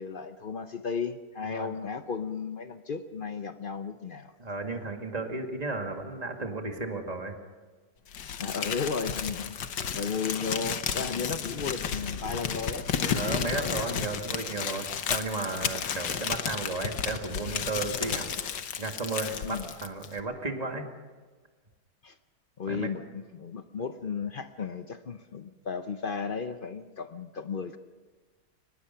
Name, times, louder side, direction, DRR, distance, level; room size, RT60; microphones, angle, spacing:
voice 1, 0.0-4.3 8.4-9.6 9.9-14.0 19.4-19.7 22.0-22.1 22.6-27.8, left 5 dB, 55° left, 9 dB, 0.5 m, -34 dB
voice 2, 4.4-7.4 13.1-18.3 18.8-20.9 22.7-22.9 23.8-23.9, right 3 dB, 20° right, 4 dB, 2.0 m, -34 dB
Crumpling crinkling, 8.1-20.2, left 7 dB, 85° left, 1.8 m, -33 dB
23.5 x 20.0 x 5.7 m, 1.4 s
omnidirectional pair, 1.9 m